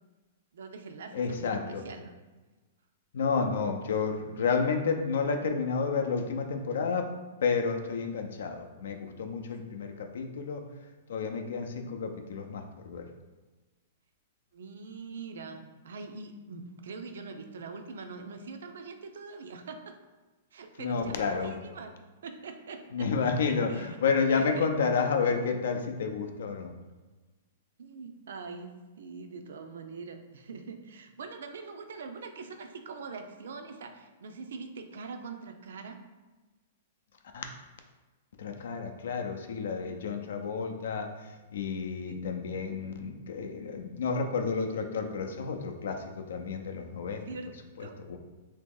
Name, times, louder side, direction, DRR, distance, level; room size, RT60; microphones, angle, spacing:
voice 1, 0.5-2.1 14.5-20.0 20.5-21.9 22.2-23.1 23.4-24.0 24.3-24.7 27.8-28.7 29.0-36.0 42.0-42.3 47.3-47.5 47.8-48.0, right 4 dB, 75° right, 6 dB, 0.4 m, -43 dB
voice 2, 1.1-1.8 3.1-7.1 7.4-10.6 11.1-13.1 20.8-21.5 22.9-26.7 37.3-37.4 38.4-47.2 47.8-48.2, left 5 dB, 70° left, 5 dB, 0.5 m, -30 dB
3.0 x 2.8 x 3.7 m, 1.2 s
hypercardioid pair, 175°, 0 cm